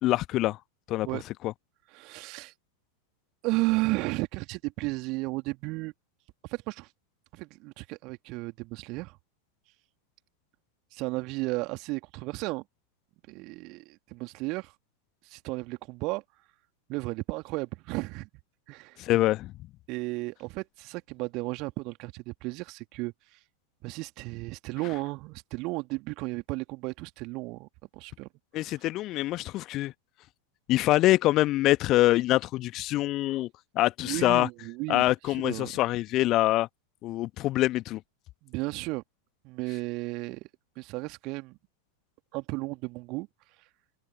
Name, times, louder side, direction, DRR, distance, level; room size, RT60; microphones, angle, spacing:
voice 1, 0.0-0.6 0.9-1.1 1.4-1.5 19.0-19.5 28.5-29.9 30.7-33.5 33.7-34.5 34.9-36.7 37.0-38.0, left 16 dB, 35° left, 1.3 m, -25 dB
voice 2, 1.9-2.5 3.4-5.9 6.4-6.9 7.3-9.2 10.9-12.6 13.3-14.7 15.2-16.2 16.9-18.3 18.7-19.0 19.9-23.4 23.8-28.3 28.7-28.8 34.0-35.7 38.4-39.0 39.4-40.5 40.8-41.6 42.3-43.3, right 24 dB, 40° right, 2.5 m, -34 dB
open air
figure-of-eight pair, 90°, 0 cm